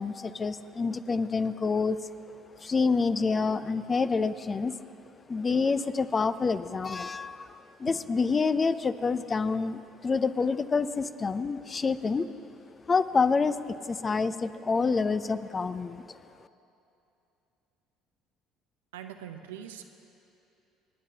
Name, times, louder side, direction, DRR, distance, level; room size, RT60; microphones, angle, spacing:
voice 1, 0.0-2.0 2.6-4.8 5.3-12.3 12.9-16.1, left 4 dB, 30° left, 13 dB, 0.5 m, -27 dB
voice 2, 18.9-19.8, right 9 dB, 75° right, 7 dB, 0.6 m, -42 dB
27.5 x 9.9 x 2.9 m, 2.8 s
hypercardioid pair, 60°, 0 cm